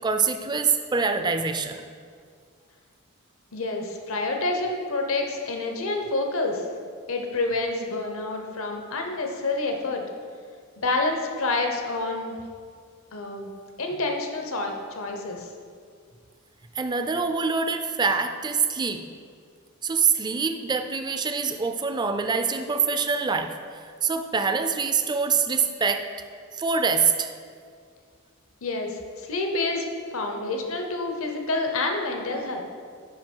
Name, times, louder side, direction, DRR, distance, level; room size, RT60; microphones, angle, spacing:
voice 1, 0.0-1.8 16.8-19.0 19.8-23.5 23.7-26.0 26.6-27.3, right 5 dB, 20° right, 7 dB, 0.4 m, -25 dB
voice 2, 3.5-6.7 7.1-10.0 10.8-12.3 13.1-13.5 13.8-15.5 28.6-29.9 30.1-32.6, left 2 dB, 70° left, 3 dB, 0.9 m, -28 dB
7.6 x 5.5 x 4.5 m, 2.1 s
head